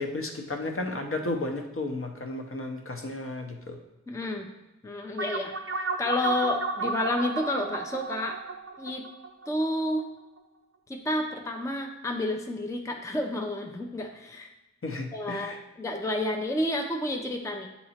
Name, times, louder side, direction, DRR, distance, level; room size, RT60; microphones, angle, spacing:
voice 1, 0.0-3.8 14.8-15.6, left 2 dB, 45° left, 3 dB, 0.8 m, -33 dB
voice 2, 4.1-4.5 4.8-8.4 8.8-9.0 9.5-10.1 10.9-14.5 15.1-17.7, left 1 dB, 10° left, 2 dB, 0.5 m, -30 dB
sound 1, 5.2-10.0, right 3 dB, 45° right, 0.5 m, -33 dB
8.3 x 2.9 x 4.2 m, 1.0 s
wide cardioid pair, 65°, 30 cm